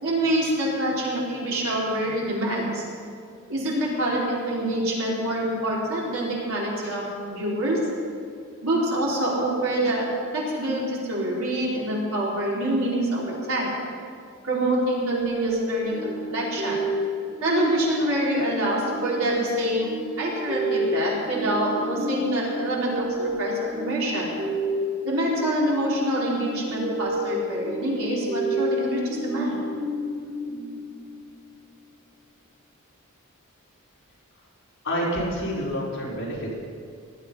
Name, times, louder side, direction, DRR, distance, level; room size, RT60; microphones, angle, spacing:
voice 1, 0.0-2.8 3.5-7.0 7.3-7.8 8.6-10.1 10.3-13.8 14.4-16.8 17.4-19.9 20.2-24.3 25.0-29.6, right 1 dB, 70° right, -5 dB, 4.6 m, -26 dB
sound 1, 15.1-31.5, equal, 55° right, 3.8 m, -30 dB
voice 2, 34.8-36.5, equal, 55° left, -6 dB, 5.3 m, -28 dB
19.5 x 12.5 x 5.7 m, 2.3 s
head